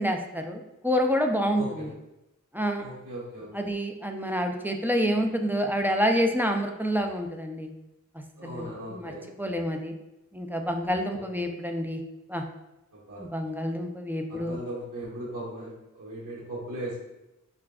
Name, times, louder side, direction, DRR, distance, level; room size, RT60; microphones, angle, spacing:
voice 1, 0.0-1.9 2.5-2.8 3.5-7.7 8.4-9.1 9.4-9.9 10.3-12.0 12.3-12.4 13.2-14.6, equal, 5° right, 3 dB, 0.4 m, -28 dB
voice 2, 1.5-1.9 2.8-3.7 8.4-9.3 11.1-11.2 12.9-13.2 14.3-17.0, right 1 dB, 85° right, -8 dB, 1.3 m, -38 dB
6.8 x 2.5 x 2.3 m, 0.93 s
wide cardioid pair, 55°, 31 cm